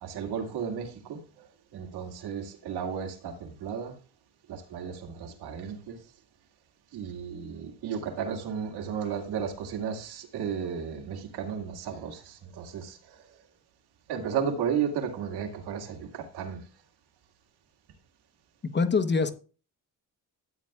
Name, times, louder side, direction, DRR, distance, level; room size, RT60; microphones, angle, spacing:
voice 1, 0.0-4.0 4.5-6.0 6.9-13.2 14.1-16.6, right 7 dB, 80° right, 2.1 m, -34 dB
voice 2, 18.6-19.3, left 4 dB, 30° left, 1.0 m, -24 dB
13.0 x 9.3 x 2.4 m
cardioid pair, 110°, 38 cm